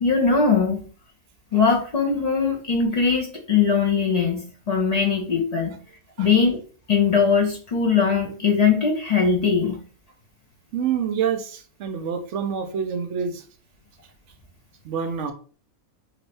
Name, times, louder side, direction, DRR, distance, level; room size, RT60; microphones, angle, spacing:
voice 1, 0.0-0.9 1.5-5.8 6.2-6.6 6.9-9.8, left 5 dB, 55° left, 0 dB, 0.4 m, -21 dB
voice 2, 10.7-13.4 14.8-15.3, right 7 dB, 65° right, 7 dB, 0.8 m, -27 dB
2.9 x 2.6 x 3.2 m, 0.40 s
omnidirectional pair, 1.5 m